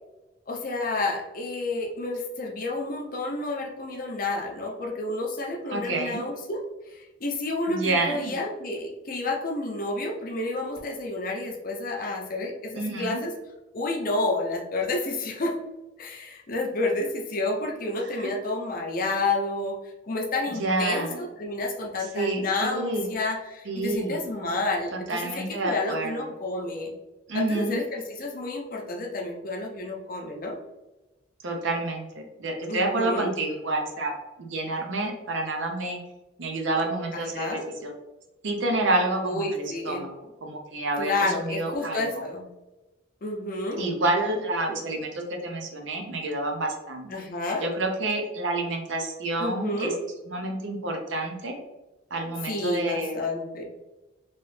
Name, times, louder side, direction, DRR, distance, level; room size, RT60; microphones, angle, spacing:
voice 1, 0.5-6.6 6.9-13.3 13.7-15.5 16.0-26.9 27.3-30.6 32.7-33.3 37.1-37.7 39.2-40.1 41.0-42.5 43.2-43.9 47.1-47.7 49.4-50.0 52.5-53.6, left 2 dB, 45° left, 1 dB, 0.6 m, -30 dB
voice 2, 5.7-6.2 7.7-8.3 12.8-13.2 18.2-18.3 20.6-21.2 22.1-23.1 23.7-24.2 24.9-26.2 27.3-27.8 31.4-34.1 34.4-36.0 36.4-37.9 38.4-42.1 43.8-47.1 47.6-49.9 50.3-51.5 52.1-53.2, right 2 dB, 80° right, 3 dB, 0.7 m, -29 dB
3.1 x 2.9 x 3.1 m, 1.0 s
head